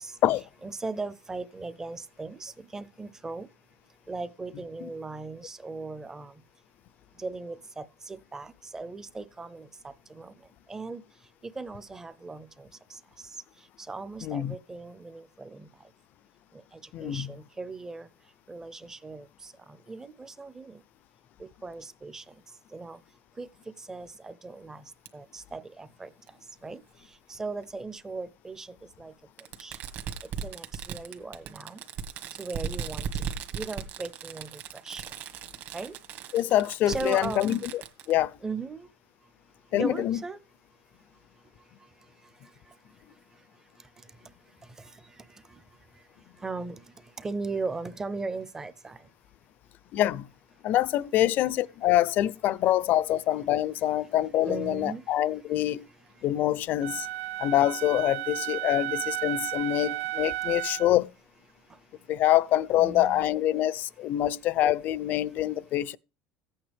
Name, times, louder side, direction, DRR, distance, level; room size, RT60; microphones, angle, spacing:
voice 1, 0.6-3.5 4.1-6.3 7.2-9.7 10.1-10.4 10.7-11.0 11.6-12.7 13.9-15.7 17.0-18.1 18.5-20.8 21.4-22.2 22.7-23.0 23.4-23.5 23.9-24.8 25.1-26.1 26.6-26.8 27.3-29.1 29.6-29.8 30.4-31.8 32.4-33.1 33.5-34.5 34.8-35.0 35.7-35.9 36.9-37.7 38.4-38.9 39.7-40.4 46.4-46.8 47.2-49.0 54.5-55.0 62.8-63.3, right 3 dB, 10° right, 0.6 m, -37 dB
voice 2, 14.2-14.6 16.9-17.3 36.3-37.8 38.1-38.4 39.7-40.2 49.9-50.3 50.6-55.9 56.2-57.1 57.4-61.1 62.1-66.0, left 13 dB, 45° left, 0.5 m, -25 dB
Fireworks, 25.1-25.2 26.3-26.4 27.6-27.7 29.4-38.1, right 7 dB, 50° right, 1.6 m, -38 dB
Wind instrument woodwind instrument, 56.8-61.0, right 16 dB, 80° right, 0.7 m, -33 dB
15.0 x 8.7 x 3.4 m
cardioid pair, 155°, 4 cm